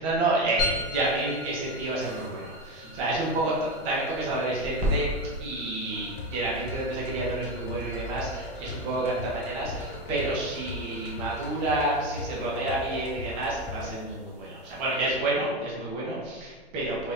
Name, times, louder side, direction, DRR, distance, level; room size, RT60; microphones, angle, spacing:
voice 1, 0.0-5.1 5.4-17.1, right 2 dB, 15° right, -6 dB, 0.8 m, -29 dB
sound 1, 0.5-0.9 2.0-2.7 4.8-5.3, right 2 dB, 60° right, 1.0 m, -48 dB
sound 2, 0.6-15.3, left 2 dB, 15° left, 0.8 m, -41 dB
sound 3, 5.9-13.9, left 1 dB, 50° left, 0.6 m, -38 dB
3.6 x 3.5 x 2.6 m, 1.4 s
hypercardioid pair, 155°, 33 cm